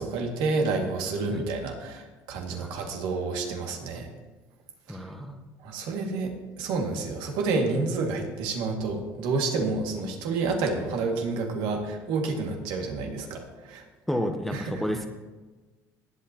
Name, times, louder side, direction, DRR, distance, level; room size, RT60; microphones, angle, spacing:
voice 1, 0.0-4.1 4.9-5.0 5.6-13.8 14.5-15.0, right 3 dB, 75° right, 2 dB, 2.3 m, -29 dB
voice 2, 4.9-5.4 14.1-15.1, equal, ahead, 4 dB, 1.1 m, -31 dB
18.5 x 8.4 x 3.0 m, 1.3 s
supercardioid pair, 80°, 8 cm